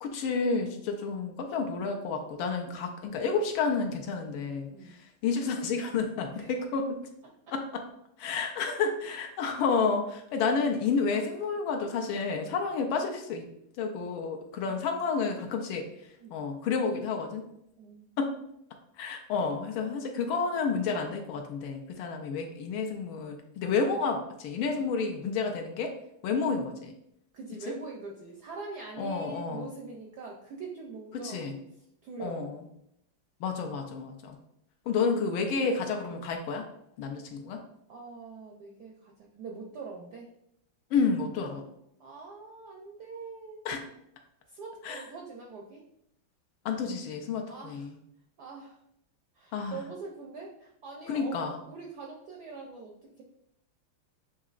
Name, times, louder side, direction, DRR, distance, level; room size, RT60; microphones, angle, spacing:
voice 1, 0.0-4.7 5.2-7.0 7.5-7.8 8.2-13.5 13.8-15.9 16.3-17.4 18.2-18.3 19.0-25.9 26.2-26.9 29.0-29.7 31.2-31.6 32.2-32.6 33.4-34.4 34.9-36.7 37.0-37.6 40.9-41.6 43.6-43.8 44.8-45.0 46.6-47.9 49.5-49.8 51.1-51.6, left 5 dB, 75° left, 3 dB, 1.4 m, -30 dB
voice 2, 17.8-18.1 26.3-26.5 27.3-31.5 32.0-32.5 37.9-40.3 42.0-43.7 44.5-45.8 47.5-47.9 48.4-48.8 49.4-53.2, right 4 dB, 75° right, 0 dB, 0.9 m, -43 dB
7.2 x 2.8 x 2.4 m, 0.78 s
omnidirectional pair, 2.3 m